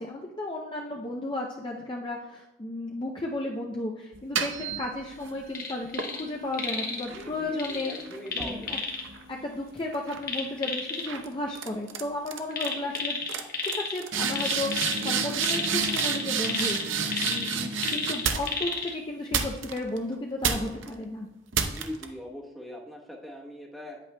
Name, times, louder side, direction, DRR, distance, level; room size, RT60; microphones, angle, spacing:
voice 1, 0.0-7.9 8.3-8.8 9.3-13.2 13.6-16.8 17.2-21.3, left 2 dB, 25° left, -1 dB, 0.5 m, -34 dB
sound 1, 4.1-5.4 6.0-9.5 9.9-10.3 11.1-11.3 11.5-12.0 12.3-12.7 12.9-13.0 13.3-18.7 19.3-20.0 20.4-20.9 21.5-22.0, right 6 dB, 65° right, 0.6 m, -31 dB
sound 2, 5.5-6.2 6.5-7.0 7.6-9.0 10.2-11.1 12.5-14.0 14.3-18.9 19.4-19.5, left 4 dB, 45° left, 1.1 m, -32 dB
voice 2, 7.1-8.9 12.7-12.9 21.6-24.0, left 1 dB, ahead, -3 dB, 1.0 m, -41 dB
9.5 x 8.2 x 2.2 m, 0.95 s
head